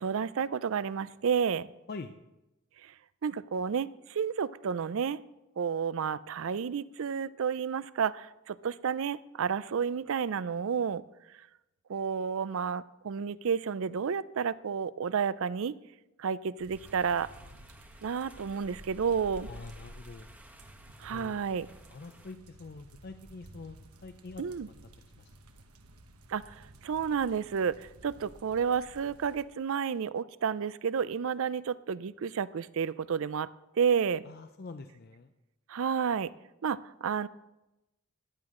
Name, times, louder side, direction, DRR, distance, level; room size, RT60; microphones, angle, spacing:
voice 1, 0.0-1.7 2.8-2.9 3.2-5.2 5.6-11.0 11.9-15.7 16.2-17.3 18.0-19.5 21.0-21.7 24.4-24.7 26.3-33.5 33.8-34.2 35.7-36.3 36.6-37.3, right 6 dB, 65° right, 18 dB, 0.4 m, -31 dB
sound 1, 16.6-29.4, right 1 dB, 90° right, 1.2 m, -55 dB
sound 2, 16.7-22.3, equal, 10° right, 1.1 m, -52 dB
voice 2, 19.5-20.3 21.1-21.4 21.9-24.4 25.0-25.3 25.6-25.7 34.2-35.3, left 3 dB, 45° left, 8 dB, 0.5 m, -45 dB
14.5 x 11.0 x 3.7 m, 0.96 s
head